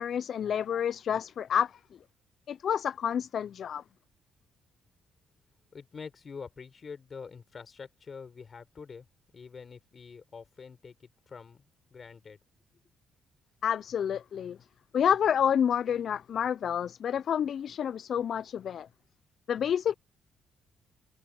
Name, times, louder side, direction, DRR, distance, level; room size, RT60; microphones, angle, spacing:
voice 1, 0.0-1.8 2.5-3.8 13.6-14.6 14.9-18.9 19.5-20.0, left 8 dB, 60° left, 0.4 m, -29 dB
voice 2, 5.7-9.1 9.3-12.4, left 5 dB, 40° left, 4.9 m, -46 dB
cardioid pair, 90°, 0 cm